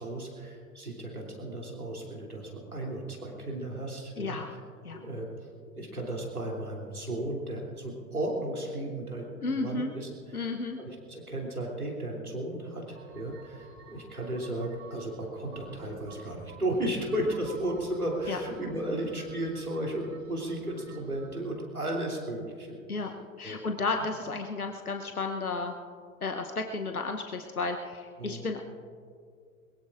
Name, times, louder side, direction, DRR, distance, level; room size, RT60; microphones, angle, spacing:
voice 1, 0.0-4.6 4.9-5.5 5.8-23.1 23.4-23.6 23.9-24.0 28.2-28.5, right 1 dB, 90° right, -2 dB, 3.2 m, -35 dB
voice 2, 4.2-4.5 4.8-5.0 9.4-9.9 10.3-10.8 18.3-18.4 22.9-23.1 23.4-25.7 26.2-28.6, left 3 dB, 90° left, 5 dB, 1.0 m, -33 dB
sound 1, 12.9-21.3, right 5 dB, 40° right, 3.3 m, -52 dB
22.0 x 22.0 x 2.5 m, 2.2 s
figure-of-eight pair, 85°, 43 cm